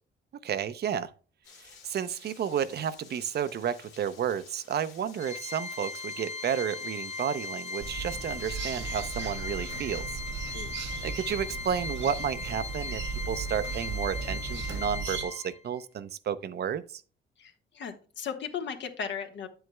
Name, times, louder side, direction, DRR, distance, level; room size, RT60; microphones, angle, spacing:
voice 1, 0.4-1.1 1.6-10.2 11.0-17.0, right 8 dB, 55° right, 0.6 m, -32 dB
Rain, 1.4-9.2, left 5 dB, 85° left, 2.4 m, -54 dB
Organ, 5.2-15.8, left 3 dB, 35° left, 0.6 m, -38 dB
sound 1, 7.8-15.3, right 5 dB, 70° right, 1.4 m, -37 dB
voice 2, 17.4-19.5, left 7 dB, 65° left, 1.3 m, -36 dB
9.2 x 7.8 x 2.2 m
cardioid pair, 90°, 20 cm